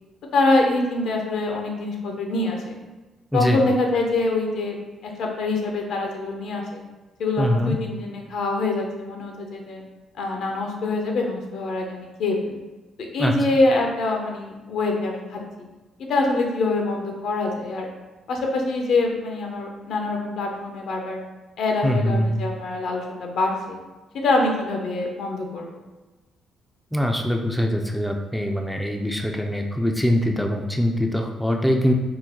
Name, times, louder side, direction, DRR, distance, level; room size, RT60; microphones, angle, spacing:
voice 1, 0.3-2.8 3.3-6.8 7.2-9.8 10.2-12.6 13.1-15.7 16.0-17.9 18.3-21.2 21.6-23.8 24.2-25.7, left 2 dB, 75° left, 1 dB, 0.6 m, -25 dB
voice 2, 3.3-3.6 7.4-7.8 13.2-13.5 21.8-22.4 26.9-31.9, equal, ahead, 2 dB, 0.3 m, -23 dB
3.7 x 2.1 x 2.9 m, 1.2 s
cardioid pair, 90°, 0 cm